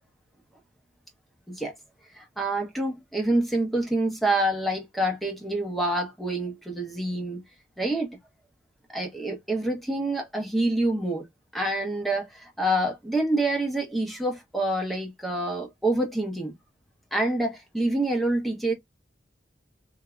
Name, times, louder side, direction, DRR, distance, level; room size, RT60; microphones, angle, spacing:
voice 1, 2.1-7.4 7.8-8.2 8.9-11.3 11.5-16.6 17.1-18.7, right 1 dB, ahead, 0.9 m, -27 dB
3.6 x 2.7 x 2.2 m
head